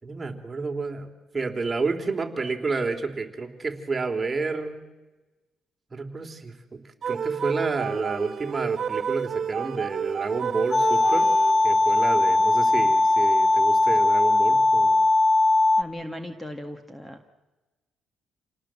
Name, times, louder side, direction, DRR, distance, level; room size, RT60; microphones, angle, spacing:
voice 1, 0.0-4.8 5.9-6.8 7.1-11.3 11.6-15.1, right 4 dB, 25° right, 4 dB, 3.3 m, -30 dB
sound 1, 7.0-11.9, right 7 dB, 50° right, 1.4 m, -31 dB
sound 2, 10.7-15.8, left 2 dB, 40° left, 0.9 m, -19 dB
voice 2, 15.8-17.3, left 1 dB, 10° left, 7 dB, 1.8 m, -37 dB
28.0 x 19.0 x 7.6 m, 1.1 s
cardioid pair, 90°, 0 cm